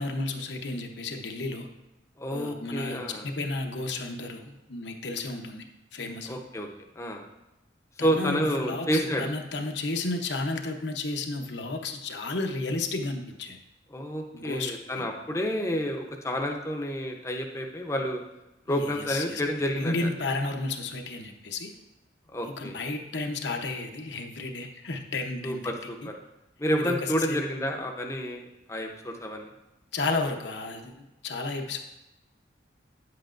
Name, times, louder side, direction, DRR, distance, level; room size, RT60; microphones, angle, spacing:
voice 1, 0.0-1.7 2.3-5.6 5.9-6.4 8.0-13.6 14.3-15.1 18.7-19.4 19.7-21.7 22.6-25.7 26.0-26.1 26.8-27.4 29.9-31.8, left 3 dB, 70° left, 4 dB, 0.8 m, -32 dB
voice 2, 2.2-3.3 6.3-6.7 7.0-7.2 8.0-9.3 13.9-18.2 18.7-20.1 22.3-22.8 25.4-26.2 26.6-29.5, equal, 15° left, 2 dB, 0.7 m, -29 dB
9.5 x 7.7 x 2.5 m, 0.95 s
head